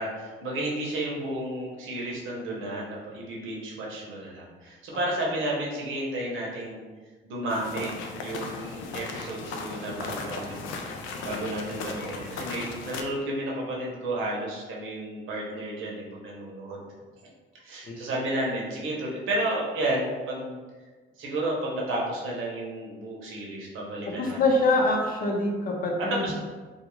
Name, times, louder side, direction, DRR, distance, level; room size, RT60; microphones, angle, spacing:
voice 1, 0.0-6.8 7.2-10.7 11.2-16.9 17.6-20.6 21.2-24.4 26.0-26.3, right 1 dB, 85° right, -3 dB, 0.8 m, -32 dB
sound 1, 7.5-13.0, left 4 dB, 85° left, 0.4 m, -36 dB
voice 2, 24.2-26.3, left 2 dB, 45° left, -1 dB, 0.7 m, -24 dB
2.4 x 2.4 x 3.0 m, 1.4 s
cardioid pair, 90°, 20 cm